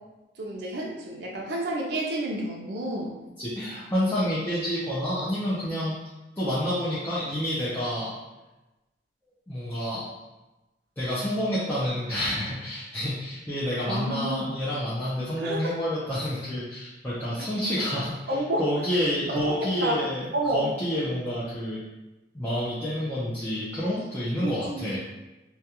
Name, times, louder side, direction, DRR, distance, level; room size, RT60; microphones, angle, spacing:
voice 1, 0.4-3.1 13.8-14.5 15.4-15.7 18.3-18.6 19.0-20.0 20.3-20.7 24.4-24.9, right 1 dB, 60° right, -2 dB, 0.5 m, -30 dB
voice 2, 3.4-5.9 6.4-8.1 9.5-10.1 11.0-21.8 22.3-25.0, equal, 10° left, -10 dB, 0.4 m, -29 dB
2.3 x 2.2 x 2.8 m, 1.1 s
head